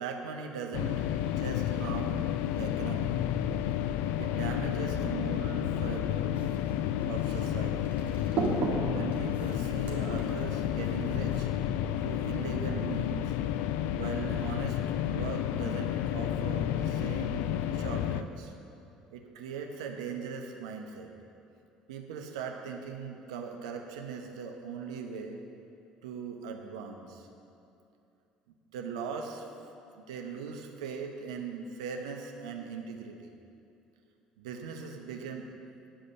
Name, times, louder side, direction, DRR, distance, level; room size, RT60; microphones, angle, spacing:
voice 1, 0.0-2.2 2.6-3.2 4.2-6.3 7.0-8.0 8.9-11.5 12.0-13.4 13.9-14.8 15.1-17.4 17.7-18.5 19.1-21.1 21.9-25.4 26.0-27.3 28.7-29.5 29.9-33.3 34.4-35.5, right 6 dB, 75° right, 3 dB, 1.0 m, -39 dB
sound 1, 0.7-18.2, left 11 dB, 65° left, 0.4 m, -31 dB
sound 2, 6.3-11.4, right 4 dB, 50° right, 1.9 m, -37 dB
10.0 x 5.1 x 7.5 m, 2.7 s
hypercardioid pair, 60°, 3 cm